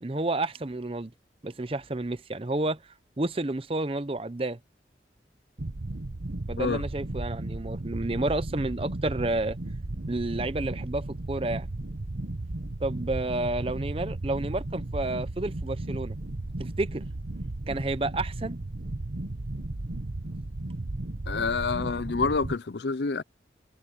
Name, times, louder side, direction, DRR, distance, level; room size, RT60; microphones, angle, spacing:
voice 1, 0.0-1.1 1.4-2.8 3.2-4.6 6.5-9.6 10.1-11.7 12.8-16.2 16.6-17.0 17.7-18.6, right 2 dB, 30° right, 0.7 m, -30 dB
sound 1, 5.6-22.6, right 2 dB, 70° right, 1.1 m, -35 dB
voice 2, 21.3-23.2, left 4 dB, 75° left, 0.6 m, -27 dB
head